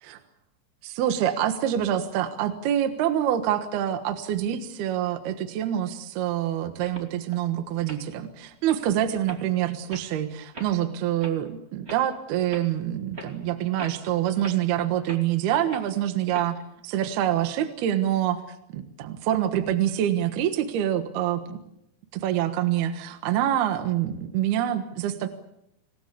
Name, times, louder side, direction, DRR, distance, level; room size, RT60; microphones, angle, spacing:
voice 1, 0.8-16.6 16.8-18.4 18.7-21.6 22.1-25.3, right 11 dB, 70° right, 9 dB, 3.2 m, -26 dB
sound 1, 6.8-7.4 7.8-8.0 8.5-8.8 9.3-9.4 9.9-10.0 10.5-10.7 11.2-11.3 11.8-12.0 12.5-12.7 13.1-13.3 13.8-14.1 14.4-14.6 15.0-15.2 15.7-15.9 16.3-16.4, right 1 dB, 20° right, 2.1 m, -40 dB
26.5 x 20.0 x 8.4 m, 0.81 s
omnidirectional pair, 5.1 m